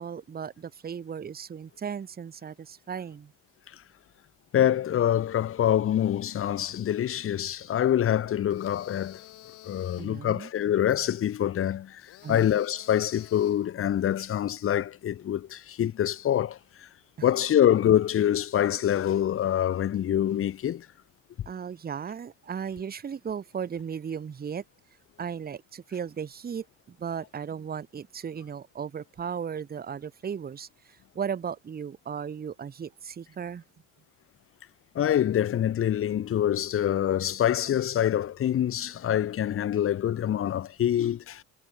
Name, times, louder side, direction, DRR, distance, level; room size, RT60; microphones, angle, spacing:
voice 1, 0.0-3.3 10.0-10.5 12.2-12.5 21.5-24.6 25.2-33.6, right 7 dB, 25° right, 1.1 m, -36 dB
voice 2, 4.5-9.2 9.7-12.0 12.3-16.6 17.2-20.9 34.9-41.4, left 10 dB, 40° left, 1.0 m, -25 dB
sound 1, 8.5-10.2 12.0-13.7, left 18 dB, 65° left, 2.2 m, -50 dB
supercardioid pair, 80°, 34 cm